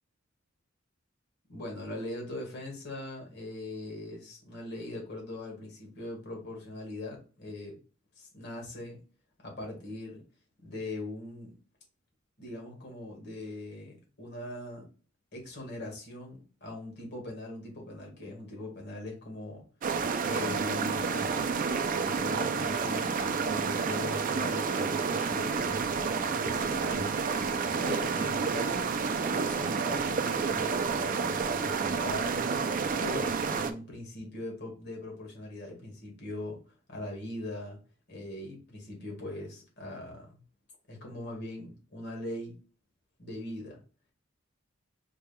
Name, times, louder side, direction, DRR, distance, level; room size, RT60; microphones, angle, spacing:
voice 1, 1.5-7.8 8.2-9.0 9.4-10.2 10.6-11.5 12.4-14.9 15.3-19.6 20.2-26.0 26.3-27.2 27.8-28.9 29.3-32.7 33.0-36.6 36.9-37.8 38.1-40.3 40.9-42.5 43.2-43.8, left 1 dB, 55° left, 0 dB, 1.7 m, -41 dB
sound 1, 19.8-33.7, right 5 dB, 45° right, 0.4 m, -30 dB
4.6 x 3.4 x 2.2 m, 0.35 s
head